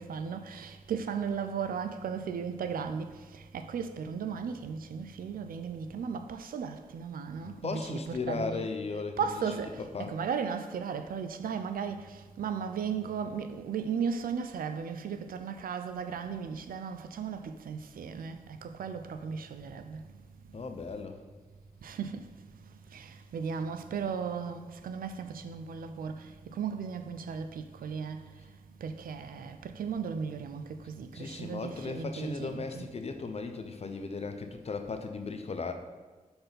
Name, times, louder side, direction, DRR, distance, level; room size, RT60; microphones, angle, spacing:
voice 1, 0.0-8.7 9.2-20.0 21.8-22.2 22.9-28.3 28.8-32.8, right 6 dB, 85° right, 0.5 m, -36 dB
voice 2, 7.4-10.2 20.5-21.2 31.1-35.7, left 4 dB, 45° left, 0.7 m, -37 dB
5.7 x 4.3 x 5.2 m
cardioid pair, 65°, 14 cm